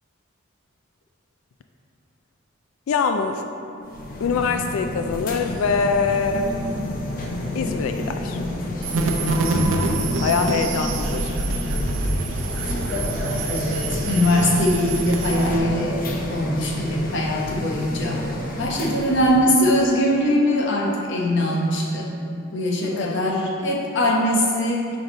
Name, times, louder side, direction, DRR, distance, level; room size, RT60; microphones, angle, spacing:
voice 1, 2.9-3.4 4.2-6.6 7.5-8.4 10.2-11.4 22.8-23.2, left 5 dB, 85° left, 6 dB, 0.3 m, -24 dB
sound 1, 3.8-19.4, left 1 dB, 45° left, 0.7 m, -29 dB
sound 2, 8.8-15.6, right 2 dB, 65° right, 0.6 m, -26 dB
voice 2, 13.5-16.0 16.3-18.2 18.6-22.1 22.5-25.0, left 1 dB, 60° left, -1 dB, 1.0 m, -21 dB
6.1 x 5.0 x 3.9 m, 2.9 s
head